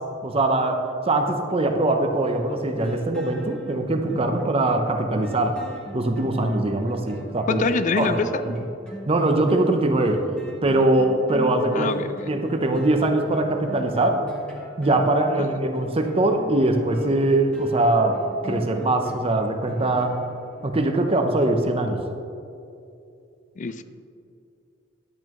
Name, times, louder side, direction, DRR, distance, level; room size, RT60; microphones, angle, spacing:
voice 1, 0.2-0.8 1.1-5.6 5.9-7.6 8.0-8.2 9.1-10.2 10.6-11.9 12.3-14.2 14.8-18.1 18.4-20.2 20.6-22.0, right 2 dB, 30° right, 5 dB, 0.7 m, -22 dB
sound 1, 2.3-21.0 21.4-21.5, right 1 dB, 5° left, 1.3 m, -41 dB
voice 2, 7.5-8.6 11.7-12.3 15.4-15.5 23.6-23.8, left 4 dB, 40° left, 12 dB, 0.4 m, -25 dB
10.5 x 8.5 x 3.0 m, 2.6 s
head